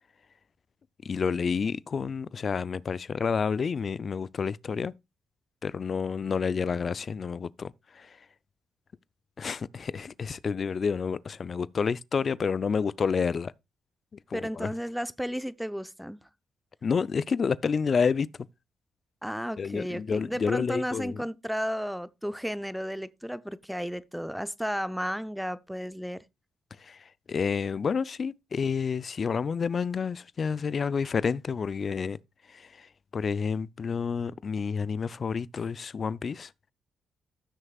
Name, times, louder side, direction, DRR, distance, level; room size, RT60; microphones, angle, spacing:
voice 1, 1.0-4.9 5.6-8.2 9.4-13.5 14.3-14.7 16.8-18.3 19.6-21.2 26.8-32.2 32.5-36.5, left 5 dB, 50° left, 0.4 m, -29 dB
voice 2, 14.3-16.2 19.2-26.2, equal, ahead, 0.6 m, -33 dB
15.5 x 6.4 x 2.3 m
supercardioid pair, 50°, 0 cm